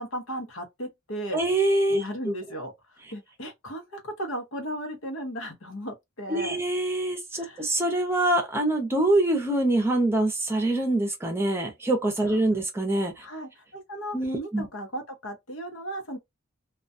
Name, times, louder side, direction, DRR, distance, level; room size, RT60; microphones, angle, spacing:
voice 1, 0.0-1.4 1.9-2.7 3.1-6.6 7.3-7.7 12.3-12.4 13.2-16.2, right 1 dB, 80° left, 0.9 m, -36 dB
voice 2, 1.3-2.0 6.3-13.1 14.1-14.7, right 1 dB, 10° right, 0.6 m, -24 dB
2.3 x 2.3 x 2.5 m
head